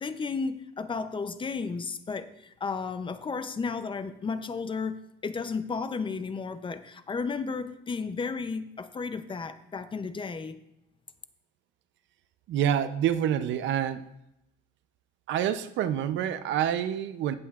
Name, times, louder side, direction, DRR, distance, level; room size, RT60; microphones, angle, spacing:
voice 1, 0.0-10.6, left 4 dB, 25° left, 10 dB, 0.6 m, -33 dB
voice 2, 12.5-14.0 15.3-17.4, right 10 dB, 65° right, 12 dB, 0.6 m, -27 dB
15.5 x 7.7 x 2.4 m, 0.84 s
cardioid pair, 120°, 21 cm